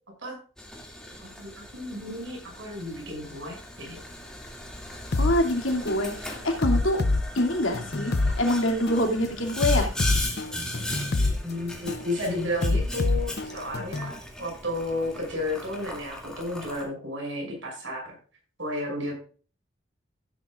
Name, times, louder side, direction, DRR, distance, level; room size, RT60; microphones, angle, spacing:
Boiling, 0.6-16.8, left 1 dB, 5° left, 2.3 m, -38 dB
voice 1, 1.2-4.0 11.4-18.0 18.6-19.1, left 1 dB, 70° right, 0 dB, 6.3 m, -32 dB
voice 2, 5.1-7.0 7.3-9.9, left 1 dB, 80° left, 3 dB, 2.5 m, -25 dB
sound 1, 5.1-5.3 5.9-6.1 6.6-8.3 8.9-9.1 9.6-11.3 11.9-12.1 12.6-14.1, left 2 dB, 50° left, 0.6 m, -25 dB
15.5 x 10.0 x 2.5 m, 0.39 s
head